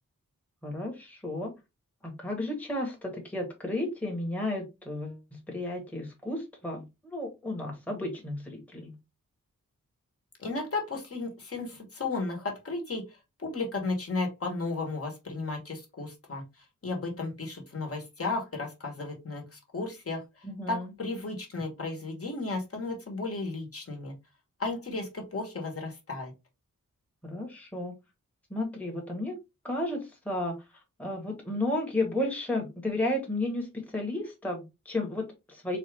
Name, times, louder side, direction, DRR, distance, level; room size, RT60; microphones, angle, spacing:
voice 1, 0.6-1.5 2.0-9.0 20.4-20.9 27.2-27.9 28.5-29.3 29.6-35.8, left 1 dB, 5° left, 0 dB, 1.0 m, -33 dB
voice 2, 10.4-13.0 13.4-24.1 24.6-26.3, left 3 dB, 45° left, 1 dB, 1.2 m, -34 dB
4.0 x 2.4 x 3.3 m, 0.24 s
wide cardioid pair, 140°, 32 cm